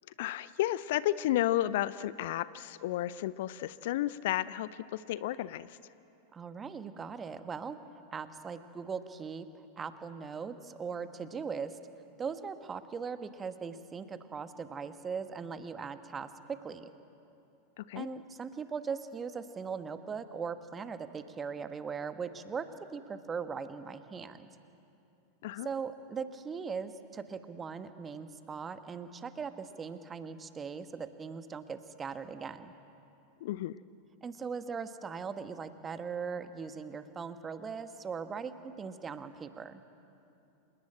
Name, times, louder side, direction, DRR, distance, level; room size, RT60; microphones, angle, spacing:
voice 1, 0.2-5.8 17.8-18.1 25.4-25.7 33.4-33.8, left 14 dB, 55° left, 18 dB, 0.5 m, -32 dB
voice 2, 6.3-7.8 8.1-9.5 9.8-11.8 12.2-16.9 17.9-22.7 22.9-24.5 25.6-32.7 34.2-39.8, right 5 dB, 20° right, 10 dB, 1.3 m, -39 dB
28.0 x 18.5 x 8.8 m, 2.8 s
figure-of-eight pair, 90°, 0 cm